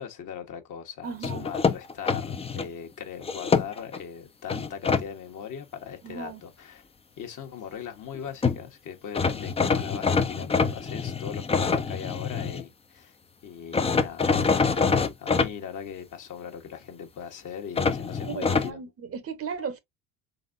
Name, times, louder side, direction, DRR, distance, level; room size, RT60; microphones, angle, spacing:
voice 1, 0.0-6.8 7.2-13.2 13.4-18.8, left 8 dB, 50° left, 1.2 m, -39 dB
voice 2, 1.0-1.4 6.0-6.4 18.2-19.8, right 6 dB, 35° right, 0.9 m, -36 dB
sound 1, 1.2-2.7 3.2-4.0 4.5-5.0 8.1-8.2 8.4-8.6 9.1-12.6 13.7-15.5 17.8-18.7, left 5 dB, 15° left, 0.5 m, -25 dB
4.1 x 3.4 x 2.5 m
hypercardioid pair, 70°, 41 cm